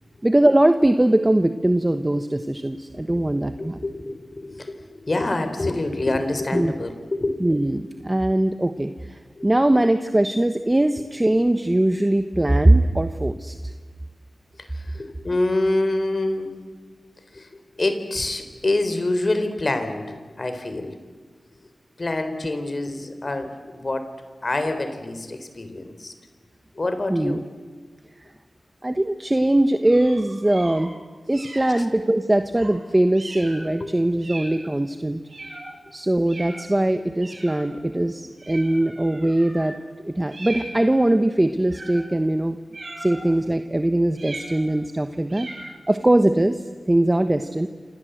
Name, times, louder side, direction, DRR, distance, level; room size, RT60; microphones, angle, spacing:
voice 1, 0.2-3.8 6.5-6.7 7.4-13.7 27.1-27.4 28.8-30.9 31.3-35.2 35.9-39.8 40.0-42.6 43.0-47.7, right 1 dB, 20° right, 8 dB, 1.2 m, -21 dB
voice 2, 3.6-7.5 9.3-9.5 14.6-16.5 17.3-21.0 22.0-24.1 24.4-26.1 26.7-27.4 31.8-31.9 33.3-33.5 33.8-33.9, left 2 dB, 45° left, 9 dB, 3.7 m, -26 dB
sound 1, 29.8-30.9 31.3-31.8 32.5-32.8 33.1-33.6 34.2-34.6 35.3-35.7 36.3-36.6 37.2-37.7 38.4-39.7 40.3-41.0 41.7-42.1 42.7-43.3 44.1-44.8 45.3-45.7, right 2 dB, 55° right, 7.9 m, -39 dB
28.0 x 27.0 x 8.0 m, 1.5 s
wide cardioid pair, 65°, 0 cm